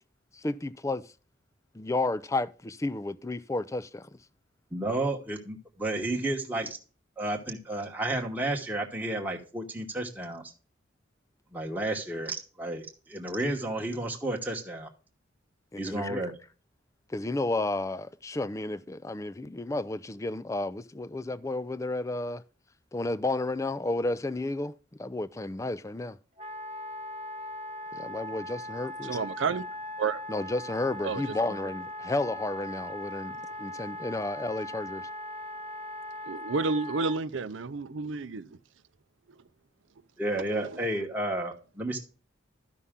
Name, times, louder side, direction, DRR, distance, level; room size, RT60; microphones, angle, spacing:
voice 1, 0.3-1.0 1.7-4.2 15.7-16.2 17.1-22.4 22.9-26.2 27.9-29.2 30.3-35.1, left 2 dB, 15° left, 0.4 m, -32 dB
voice 2, 4.7-6.8 7.2-10.4 11.5-14.9 15.8-16.3 40.2-42.0, right 1 dB, 10° right, 1.1 m, -32 dB
Wind instrument woodwind instrument, 26.4-37.2, left 1 dB, 35° right, 0.8 m, -39 dB
voice 3, 29.0-29.6 30.0-30.2 31.0-31.4 36.3-38.6 40.5-40.8, right 4 dB, 75° right, 0.6 m, -31 dB
12.5 x 5.6 x 3.6 m
head